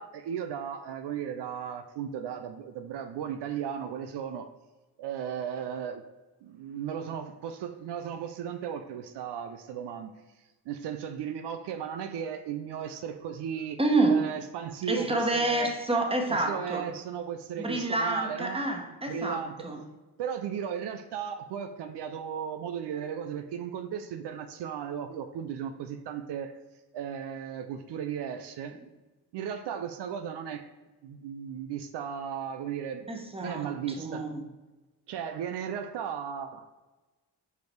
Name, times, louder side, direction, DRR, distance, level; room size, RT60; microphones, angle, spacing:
voice 1, 0.0-4.5 5.0-6.0 6.4-10.1 10.7-13.8 14.1-15.7 16.3-18.6 19.1-19.7 20.2-26.5 26.9-28.8 29.3-30.7 31.0-33.1 33.4-34.2 35.1-36.7, right 8 dB, 75° right, 7 dB, 0.6 m, -36 dB
voice 2, 13.8-14.2 14.9-16.9 17.6-19.8 33.1-33.7 34.0-34.4, right 2 dB, 15° right, 3 dB, 1.4 m, -28 dB
5.0 x 4.8 x 4.6 m, 1.2 s
supercardioid pair, 55°, 42 cm